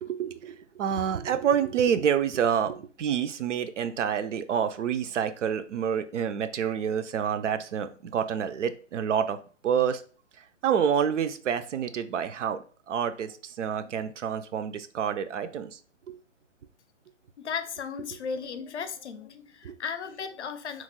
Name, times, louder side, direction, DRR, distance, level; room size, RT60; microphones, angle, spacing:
voice 1, 0.0-9.4 9.6-10.0 10.6-15.8 16.1-16.2 19.6-19.8, right 8 dB, 70° right, 11 dB, 0.5 m, -28 dB
voice 2, 17.4-20.8, left 6 dB, 65° left, 10 dB, 0.5 m, -35 dB
3.1 x 2.1 x 3.5 m, 0.40 s
hypercardioid pair, 175°, 37 cm